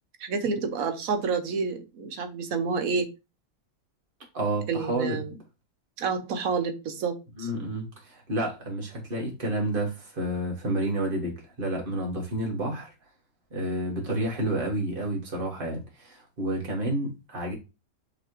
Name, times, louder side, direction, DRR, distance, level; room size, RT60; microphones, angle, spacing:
voice 1, 0.2-3.1 4.7-5.3 6.0-7.5, right 5 dB, 75° right, 1.2 m, -29 dB
voice 2, 4.3-5.2 7.4-12.9 13.5-17.5, right 1 dB, 35° right, 1.8 m, -30 dB
5.6 x 3.3 x 2.8 m
omnidirectional pair, 1.5 m